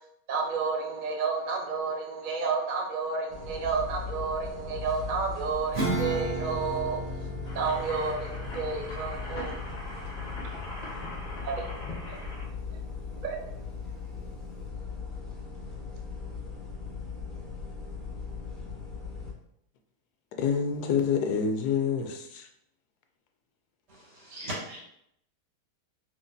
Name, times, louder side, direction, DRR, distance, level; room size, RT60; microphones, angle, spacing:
voice 1, 0.3-7.0 7.5-9.6 11.4-11.5 12.0-12.2 13.2-13.4, right 5 dB, 70° right, 0.4 m, -31 dB
sound 1, 3.3-19.3, left 5 dB, ahead, 0.9 m, -39 dB
Acoustic guitar / Strum, 5.7-11.7, right 2 dB, 40° right, 1.5 m, -36 dB
sound 2, 7.4-12.4, left 1 dB, 35° left, 0.8 m, -41 dB
voice 2, 20.4-22.5, left 6 dB, 75° left, 1.1 m, -27 dB
voice 3, 23.9-24.8, right 1 dB, 85° right, 2.2 m, -38 dB
4.3 x 3.0 x 2.6 m
omnidirectional pair, 1.7 m